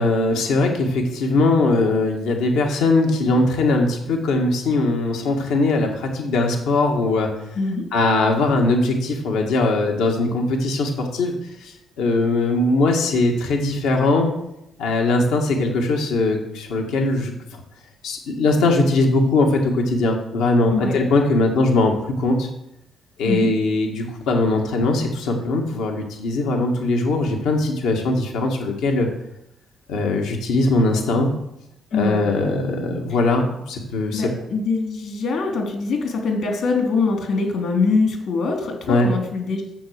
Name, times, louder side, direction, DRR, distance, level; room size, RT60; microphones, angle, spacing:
voice 1, 0.0-7.3 7.9-11.3 11.6-14.3 14.8-17.3 18.0-22.5 23.2-29.1 29.9-31.3 31.9-34.3 38.9-39.1, left 2 dB, 90° left, 2 dB, 1.9 m, -20 dB
voice 2, 20.7-21.0 23.2-23.5 31.9-32.2 34.1-39.7, left 4 dB, 70° left, 3 dB, 3.3 m, -23 dB
10.5 x 7.6 x 6.7 m, 0.84 s
cardioid pair, 90°, 0 cm